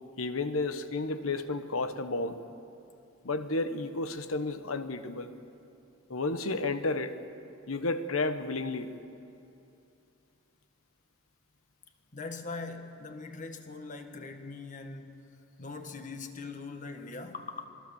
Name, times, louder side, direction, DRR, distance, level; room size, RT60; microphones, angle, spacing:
voice 1, 0.2-2.4 3.2-5.3 6.1-7.2 7.7-8.9, left 3 dB, 80° left, 1.2 m, -32 dB
voice 2, 12.1-15.3 15.6-17.7, left 3 dB, 40° left, 1.6 m, -41 dB
26.5 x 19.5 x 7.1 m
head